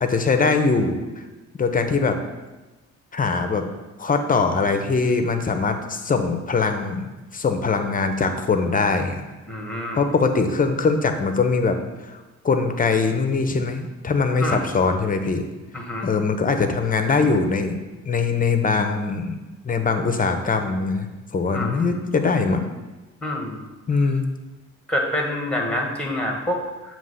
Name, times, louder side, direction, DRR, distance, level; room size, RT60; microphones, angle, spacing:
voice 1, 0.0-1.0 1.5-2.2 3.1-3.6 4.0-9.2 9.9-11.8 12.0-12.2 12.4-15.4 16.0-17.8 18.0-19.4 19.6-21.1 21.3-22.7 23.9-24.3, left 4 dB, 30° left, 7 dB, 0.7 m, -22 dB
voice 2, 9.5-10.0 14.4-14.7 15.7-16.1 21.5-21.9 23.2-23.6 24.9-27.0, left 1 dB, 5° left, 1 dB, 1.4 m, -27 dB
7.3 x 3.0 x 5.5 m, 1.2 s
cardioid pair, 90°, 30 cm